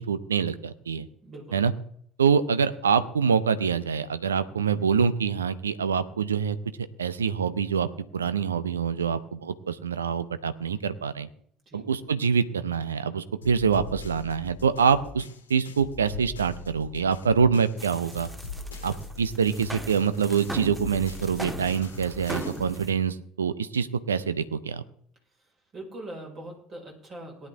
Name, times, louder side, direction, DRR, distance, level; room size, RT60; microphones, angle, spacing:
voice 1, 0.0-1.1 1.5-1.7 2.2-6.6 7.0-7.9 8.1-11.3 11.7-15.2 15.5-18.3 18.8-24.8, right 6 dB, 75° right, 14 dB, 0.7 m, -25 dB
voice 2, 1.2-1.6 11.7-11.9 25.4-27.5, right 1 dB, 35° right, 1 dB, 5.0 m, -42 dB
sound 1, 13.4-17.8 18.1-22.8, left 4 dB, 80° left, 1.4 m, -41 dB
sound 2, 17.8-22.9, right 1 dB, 10° right, 1.5 m, -39 dB
18.0 x 10.5 x 3.6 m, 0.63 s
figure-of-eight pair, 60°, 0 cm